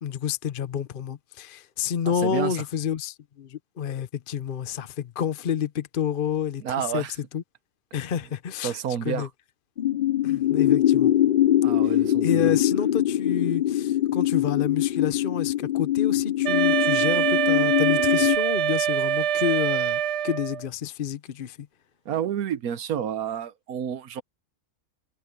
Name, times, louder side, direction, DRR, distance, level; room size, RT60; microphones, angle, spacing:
voice 1, 0.0-6.6 6.9-7.0 7.3-7.4 7.9-8.8 9.0-9.3 10.2-11.1 11.8-11.9 12.2-21.6, left 8 dB, 45° left, 0.8 m, -29 dB
voice 2, 2.0-2.6 6.6-7.2 8.6-9.3 11.6-12.5 22.0-24.2, right 9 dB, 80° right, 1.4 m, -30 dB
sound 1, 9.8-18.4, left 12 dB, 75° left, 0.4 m, -22 dB
Wind instrument woodwind instrument, 16.4-20.6, right 10 dB, 60° right, 0.9 m, -24 dB
omnidirectional pair, 1.5 m